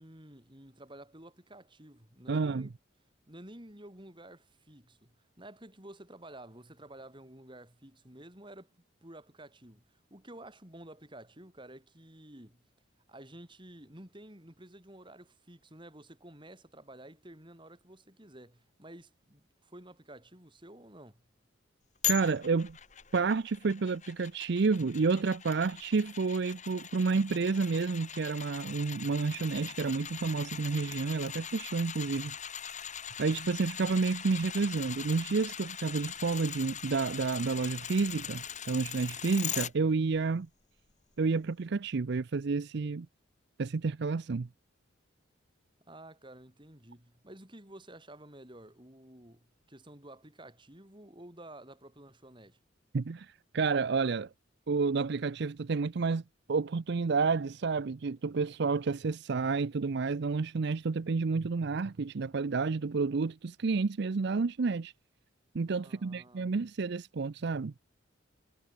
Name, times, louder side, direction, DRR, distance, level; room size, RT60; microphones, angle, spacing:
voice 1, 0.0-2.7 3.3-8.7 9.0-12.6 13.1-21.2 45.9-52.6 65.8-66.6, right 1 dB, 25° right, 5.1 m, -51 dB
voice 2, 2.3-2.7 22.0-22.8 23.1-32.3 33.2-40.5 41.2-43.1 43.6-44.5 52.9-54.3 54.7-56.2 56.5-64.9 65.5-67.7, right 4 dB, 55° right, 0.5 m, -30 dB
sound 1, 22.0-39.7 40.1-40.2, left 9 dB, 35° left, 3.7 m, -41 dB
head